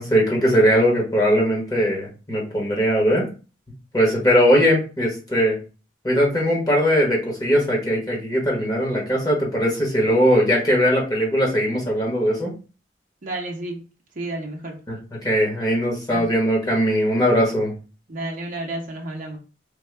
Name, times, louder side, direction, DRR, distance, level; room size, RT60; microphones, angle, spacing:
voice 1, 0.0-3.3 3.9-5.6 6.0-12.5 14.9-15.0 15.2-17.7, equal, 20° left, 1.1 m, -20 dB
voice 2, 13.2-13.8 14.1-14.8 16.1-16.3 18.1-19.4, right 2 dB, 45° right, 0.7 m, -31 dB
3.5 x 2.2 x 3.3 m
head